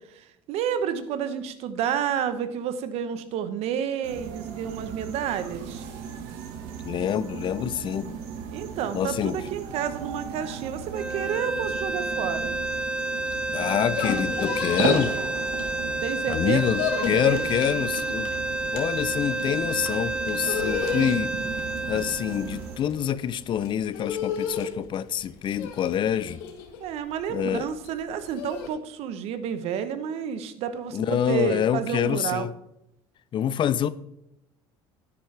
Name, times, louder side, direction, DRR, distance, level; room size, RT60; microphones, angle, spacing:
voice 1, 0.1-5.8 8.5-12.6 16.0-17.4 20.9-21.2 26.8-32.5, right 8 dB, 65° right, 1.0 m, -30 dB
sound 1, 4.0-22.8, right 7 dB, 85° right, 1.3 m, -36 dB
voice 2, 6.8-8.2 8.9-9.4 13.5-15.2 16.3-18.3 18.7-21.3 21.9-26.4 27.3-27.7 30.9-32.5 33.3-33.9, left 9 dB, 45° left, 0.5 m, -26 dB
sound 2, 10.9-23.2, right 2 dB, 10° right, 0.4 m, -30 dB
sound 3, 13.7-16.1 16.4-28.7, left 7 dB, 90° left, 1.4 m, -33 dB
10.0 x 9.6 x 3.3 m
supercardioid pair, 95°, 11 cm